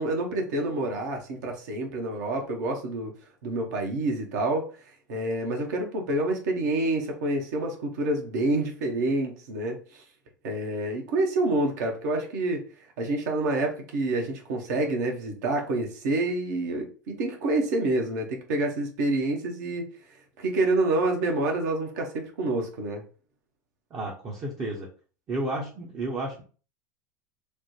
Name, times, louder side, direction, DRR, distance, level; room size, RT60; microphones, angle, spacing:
voice 1, 0.0-3.1 3.4-4.6 5.1-10.0 10.4-12.6 13.0-19.9 20.4-23.0, right 2 dB, 60° right, 0.9 m, -27 dB
voice 2, 23.9-24.9 25.3-26.4, right 2 dB, 30° right, 0.7 m, -32 dB
3.2 x 2.1 x 3.0 m
figure-of-eight pair, 80°, 10 cm